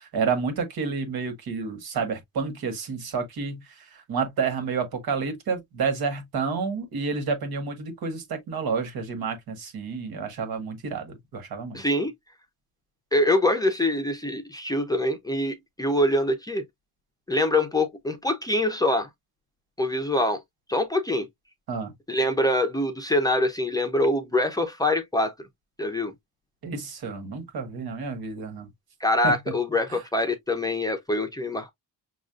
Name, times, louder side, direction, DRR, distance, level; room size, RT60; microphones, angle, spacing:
voice 1, 0.0-11.8 21.7-21.9 26.6-28.7 29.2-29.3 29.9-30.0, right 5 dB, 85° right, 1.6 m, -30 dB
voice 2, 11.7-12.1 13.1-16.6 17.3-19.1 19.8-20.4 20.7-21.3 22.1-25.3 25.8-26.1 29.0-31.7, left 1 dB, 10° left, 0.5 m, -24 dB
6.2 x 2.3 x 2.4 m
wide cardioid pair, 170°, 36 cm